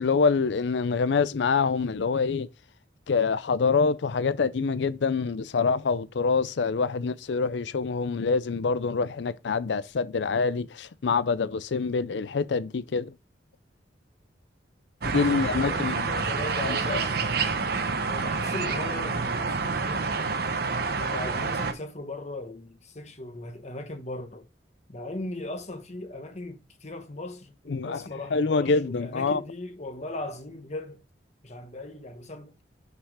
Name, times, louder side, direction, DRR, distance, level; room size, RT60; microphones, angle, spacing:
voice 1, 0.0-2.5 3.1-13.1 15.1-16.1 16.8-17.0 27.7-28.0 28.3-29.4, left 4 dB, 70° left, 0.5 m, -25 dB
sound 1, 15.0-21.7, right 4 dB, 55° right, 0.8 m, -28 dB
voice 2, 15.1-17.5 18.1-20.2 21.0-24.5 24.9-31.0 31.4-32.5, left 2 dB, 40° left, 1.1 m, -38 dB
5.7 x 5.7 x 4.8 m
head